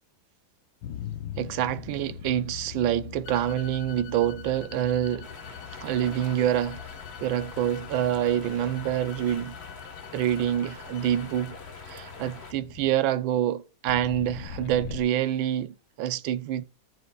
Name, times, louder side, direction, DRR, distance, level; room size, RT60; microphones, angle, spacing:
sound 1, 0.8-12.9 13.9-15.0, left 9 dB, 70° left, 1.3 m, -42 dB
voice 1, 1.4-6.8 7.2-9.6 10.1-11.5 11.9-16.7, right 11 dB, 75° right, 1.2 m, -27 dB
sound 2, 3.2-11.6, left 8 dB, 85° left, 1.6 m, -48 dB
sound 3, 5.2-12.5, left 4 dB, 35° left, 1.3 m, -45 dB
16.0 x 6.5 x 2.3 m
omnidirectional pair, 2.4 m